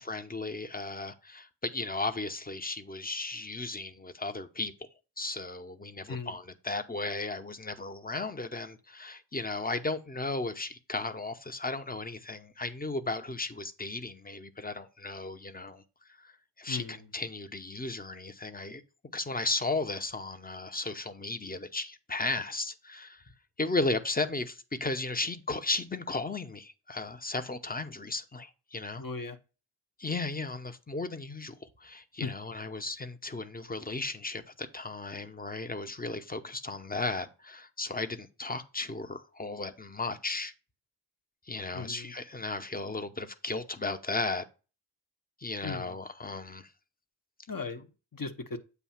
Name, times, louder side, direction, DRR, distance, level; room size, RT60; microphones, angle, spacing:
voice 1, 0.0-4.9 5.2-15.8 16.2-16.3 16.6-18.8 19.1-23.2 23.6-29.0 30.0-40.5 41.5-44.4 45.4-46.7, left 3 dB, 20° left, 0.7 m, -35 dB
voice 2, 29.0-29.4 32.2-32.3 41.7-42.1 45.6-46.0 47.5-48.6, left 4 dB, 50° left, 0.9 m, -37 dB
8.2 x 2.8 x 5.7 m
wide cardioid pair, 45°, 45 cm